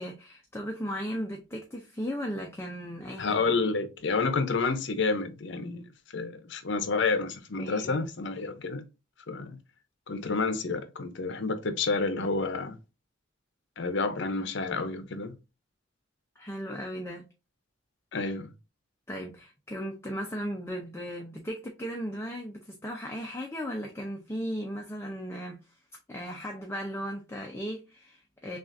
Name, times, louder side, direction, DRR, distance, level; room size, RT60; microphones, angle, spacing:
voice 1, 0.0-3.6 7.5-8.0 16.4-17.2 19.1-25.8 26.1-28.6, equal, 15° left, 0.5 m, -36 dB
voice 2, 3.2-5.9 6.1-8.8 9.3-9.6 10.1-12.8 13.8-15.3 18.1-18.5, left 4 dB, 60° left, 0.7 m, -29 dB
6.0 x 2.4 x 2.5 m
head